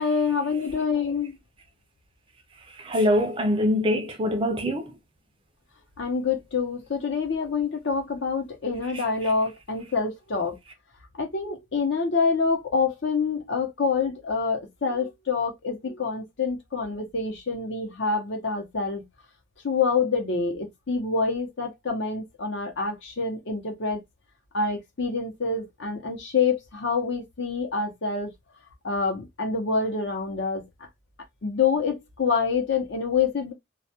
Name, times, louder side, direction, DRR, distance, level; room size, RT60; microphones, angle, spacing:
voice 1, 0.0-1.4 6.0-10.6 11.2-19.0 19.6-24.0 24.5-28.3 28.8-30.6 31.4-33.5, left 5 dB, 55° left, 0.7 m, -26 dB
voice 2, 2.8-4.9 8.9-9.3, left 1 dB, 25° right, 0.4 m, -24 dB
2.3 x 2.1 x 2.7 m
head